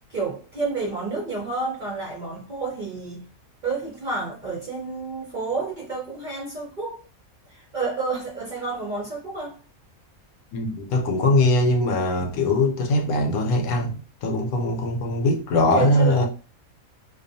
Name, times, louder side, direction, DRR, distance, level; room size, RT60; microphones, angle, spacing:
voice 1, 0.1-3.3 3.6-7.0 7.5-9.6 15.7-16.2, right 4 dB, 50° right, 0.6 m, -30 dB
voice 2, 10.5-16.3, left 1 dB, 80° left, 1.0 m, -21 dB
2.5 x 2.3 x 2.5 m
omnidirectional pair, 1.5 m